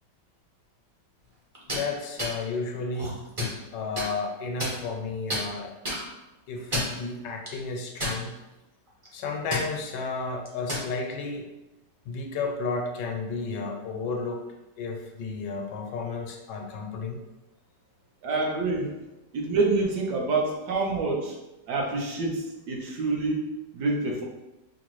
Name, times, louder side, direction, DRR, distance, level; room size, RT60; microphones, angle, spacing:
sound 1, 1.5-1.8 2.2-2.3 2.9-3.6 4.0-4.1 4.6-5.0 5.3-5.4 5.8-6.0 6.6-7.0 7.5-7.6 8.0-8.5 8.9-9.1 9.5-9.7 10.5-10.9, left 1 dB, 35° right, 0.5 m, -30 dB
voice 1, 1.7-3.2 3.7-5.7 6.5-8.4 9.1-11.5 12.1-14.4 14.8-17.2, left 4 dB, 80° left, 3 dB, 1.2 m, -32 dB
voice 2, 18.2-19.0 19.3-21.4 21.7-24.2, right 3 dB, 70° right, 0 dB, 1.2 m, -27 dB
5.1 x 2.1 x 3.0 m, 1.0 s
omnidirectional pair, 1.9 m